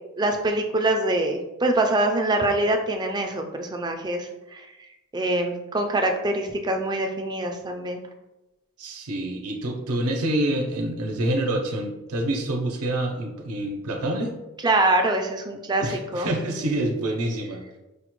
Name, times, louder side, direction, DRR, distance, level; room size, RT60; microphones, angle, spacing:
voice 1, 0.2-4.6 5.1-8.0 14.6-16.3, right 2 dB, 20° right, 4 dB, 0.3 m, -24 dB
voice 2, 8.8-14.3 15.8-17.6, right 1 dB, 85° right, 2 dB, 0.5 m, -27 dB
5.0 x 2.1 x 2.9 m, 1.0 s
head